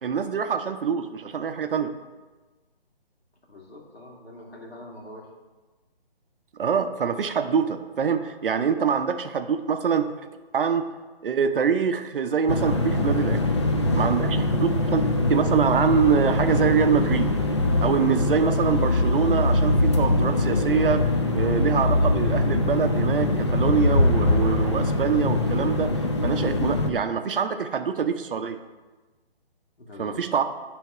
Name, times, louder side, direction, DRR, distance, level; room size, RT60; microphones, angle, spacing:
voice 1, 0.0-1.9 6.6-10.1 10.5-10.8 11.2-13.5 13.9-17.3 17.8-21.0 21.3-25.9 26.2-28.6 30.0-30.4, right 6 dB, 60° right, 9 dB, 0.6 m, -24 dB
voice 2, 3.5-5.3 29.8-30.4, left 1 dB, 80° left, -1 dB, 2.0 m, -44 dB
sound 1, 12.5-26.9, left 2 dB, 30° left, 0.4 m, -22 dB
9.0 x 3.5 x 4.7 m, 1.2 s
hypercardioid pair, 160°, 31 cm